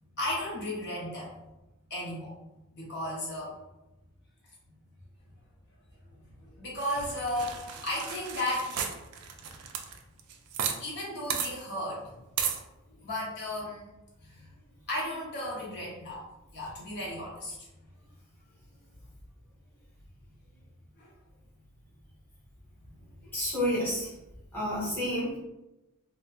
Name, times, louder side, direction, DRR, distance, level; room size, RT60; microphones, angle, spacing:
voice 1, 0.1-1.3 1.9-2.4 2.7-3.6 6.4-8.7 10.8-12.0 13.0-13.8 14.2-14.5 14.9-16.2 16.5-17.6 21.0-21.1, left 1 dB, 50° left, -4 dB, 0.9 m, -34 dB
sound 1, 6.8-10.8 11.0-11.1 11.3-11.5 12.4-12.6, right 7 dB, 90° right, 0.4 m, -34 dB
voice 2, 23.3-24.1 24.5-25.4, equal, 10° left, -11 dB, 1.5 m, -30 dB
4.1 x 2.2 x 2.4 m, 0.96 s
head